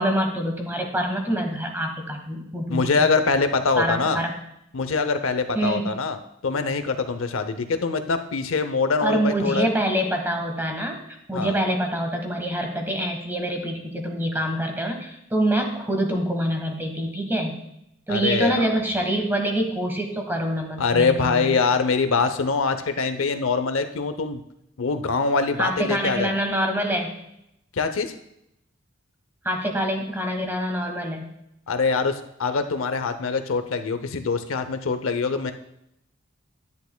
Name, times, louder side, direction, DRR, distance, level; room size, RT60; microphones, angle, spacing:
voice 1, 0.0-3.1 3.8-4.3 5.5-5.9 9.0-11.0 11.3-17.6 18.1-21.6 25.6-27.1 29.4-31.3, right 1 dB, 10° right, 3 dB, 1.2 m, -25 dB
voice 2, 2.7-4.2 4.7-6.2 6.4-9.7 11.3-11.6 18.1-18.7 20.8-24.4 24.8-26.3 27.7-28.1 31.7-35.5, left 4 dB, 85° left, 9 dB, 0.7 m, -24 dB
10.5 x 10.5 x 2.2 m, 0.81 s
head